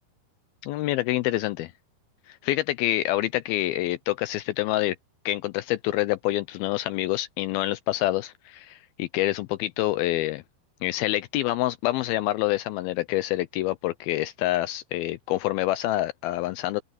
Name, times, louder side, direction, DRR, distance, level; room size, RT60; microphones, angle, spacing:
voice 1, 0.6-1.7 2.3-5.0 5.3-10.4 10.8-16.8, left 16 dB, 85° left, 2.3 m, -27 dB
open air
omnidirectional pair, 4.7 m